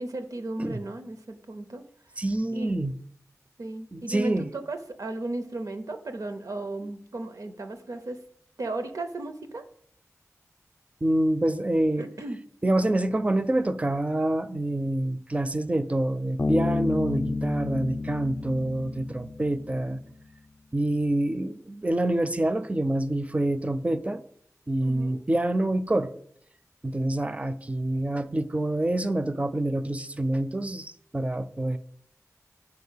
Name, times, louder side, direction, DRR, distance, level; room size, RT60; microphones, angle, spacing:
voice 1, 0.0-1.8 2.5-2.8 3.6-8.2 8.6-9.6 12.0-12.4 24.8-25.2, right 2 dB, 80° right, 0.6 m, -35 dB
voice 2, 2.2-3.0 3.9-4.5 11.0-12.1 12.6-20.0 20.7-24.2 24.7-26.1 26.8-31.8, right 1 dB, 25° right, 0.4 m, -26 dB
Bass guitar, 16.4-19.8, left 3 dB, 50° left, 0.5 m, -30 dB
4.8 x 4.0 x 5.5 m
wide cardioid pair, 50°, 6 cm